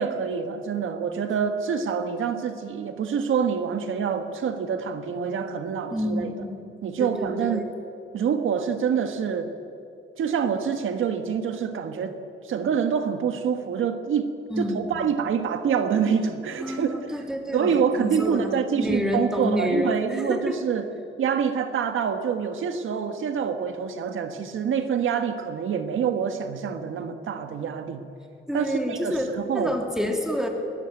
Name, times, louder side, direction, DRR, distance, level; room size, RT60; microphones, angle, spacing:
voice 1, 0.0-6.3 6.8-7.7 8.1-9.5 10.2-12.2 12.4-17.2 17.5-20.9 21.2-28.0 28.5-29.7, right 7 dB, 75° right, 7 dB, 1.6 m, -26 dB
voice 2, 5.9-6.5 7.0-7.7 14.5-15.0 16.6-20.6 28.5-30.5, left 1 dB, 5° right, 3 dB, 3.1 m, -28 dB
21.0 x 19.5 x 9.1 m, 2.6 s
cardioid pair, 135°, 20 cm